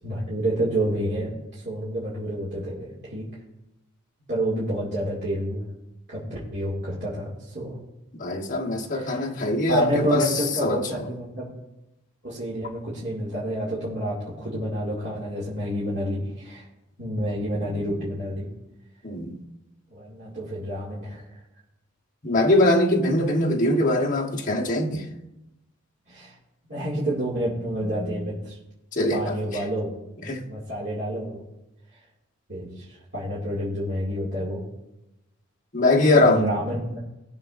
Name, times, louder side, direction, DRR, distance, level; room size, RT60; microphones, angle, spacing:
voice 1, 0.0-3.2 4.3-5.6 6.1-7.8 8.9-9.3 9.7-11.5 12.2-16.7 17.0-18.5 19.9-21.3 26.1-26.4 26.7-28.6 29.1-29.9 30.4-31.4 32.5-34.7 36.1-37.0, equal, 50° right, 2.3 m, -29 dB
voice 2, 8.2-10.3 10.6-10.8 19.0-19.4 22.2-25.0 28.9-29.3 30.2-30.4 35.7-36.5, left 2 dB, 35° left, 1.2 m, -22 dB
20.0 x 7.0 x 2.6 m
head